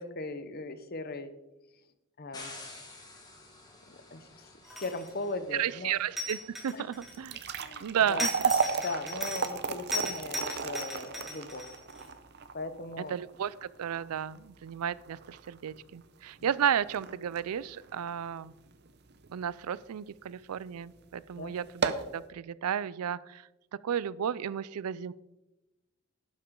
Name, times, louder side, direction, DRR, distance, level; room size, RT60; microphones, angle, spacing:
voice 1, 0.0-1.3 2.2-2.6 3.9-4.3 4.8-5.9 6.7-6.8 7.6-8.3 8.8-11.7 12.5-13.1 21.4-21.5, left 2 dB, 45° left, 10 dB, 0.9 m, -38 dB
sound 1, 2.3-7.5, left 2 dB, 15° left, 1.7 m, -51 dB
sound 2, 4.6-5.2 6.2-7.5 8.2-9.6 9.9-12.1, left 1 dB, ahead, 2.5 m, -37 dB
voice 2, 5.5-7.4 7.8-8.3 13.0-18.5 19.3-23.4 23.8-25.1, right 9 dB, 85° right, 20 dB, 0.4 m, -33 dB
sound 3, 7.0-19.3 19.8-19.9 20.6-20.8 21.1-21.2 21.6-22.2, right 5 dB, 50° right, 0.7 m, -35 dB
12.0 x 10.5 x 3.7 m, 1.0 s
head